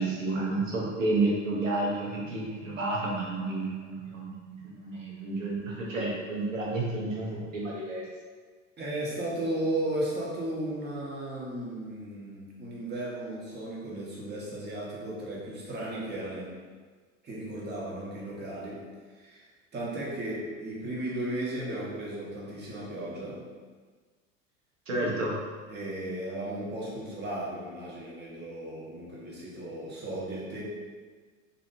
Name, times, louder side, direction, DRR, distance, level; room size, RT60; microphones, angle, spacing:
voice 1, 0.0-8.0 24.9-25.4, right 2 dB, 90° right, -5 dB, 1.1 m, -30 dB
voice 2, 8.8-16.5 17.2-18.8 19.1-19.5 19.7-23.4 25.7-30.6, right 1 dB, 25° right, -5 dB, 1.1 m, -35 dB
4.2 x 2.7 x 2.7 m, 1.5 s
hypercardioid pair, 85°, 38 cm